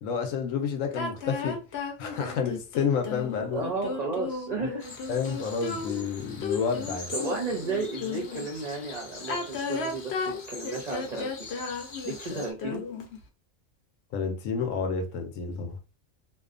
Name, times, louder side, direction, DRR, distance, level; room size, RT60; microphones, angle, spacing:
voice 1, 0.0-1.6 2.0-3.6 4.6-4.7 5.1-7.1 14.1-15.8, left 6 dB, 80° left, 1.0 m, -30 dB
sound 1, 0.9-8.5 9.2-13.2, left 4 dB, 60° left, 0.8 m, -34 dB
voice 2, 3.5-4.9 7.1-11.5 12.0-12.8, right 3 dB, 50° right, 0.5 m, -33 dB
sound 2, 4.8-12.5, left 3 dB, 30° left, 0.6 m, -43 dB
2.6 x 2.2 x 2.4 m
omnidirectional pair, 1.4 m